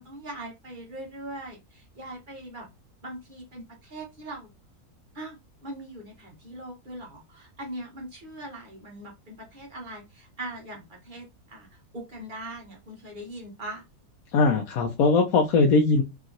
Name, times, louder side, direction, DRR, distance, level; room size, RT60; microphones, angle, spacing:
voice 1, 0.0-2.7 3.0-4.5 5.1-13.8, right 1 dB, 40° right, 0.9 m, -41 dB
voice 2, 14.3-16.0, left 4 dB, 75° left, 1.0 m, -20 dB
3.0 x 2.7 x 2.4 m
omnidirectional pair, 1.6 m